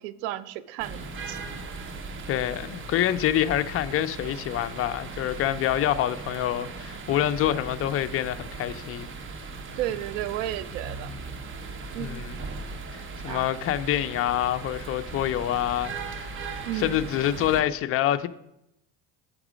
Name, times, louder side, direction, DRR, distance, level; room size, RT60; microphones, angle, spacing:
voice 1, 0.0-1.6 9.8-11.1 11.9-12.1 13.3-13.5 16.7-16.9, right 13 dB, 80° right, 0.6 m, -33 dB
sound 1, 0.8-17.6, right 4 dB, 35° right, 0.9 m, -38 dB
voice 2, 2.3-9.1 12.0-12.4 12.9-16.3 16.8-18.3, left 12 dB, 40° left, 0.4 m, -26 dB
7.2 x 6.0 x 5.0 m
supercardioid pair, 110°, 37 cm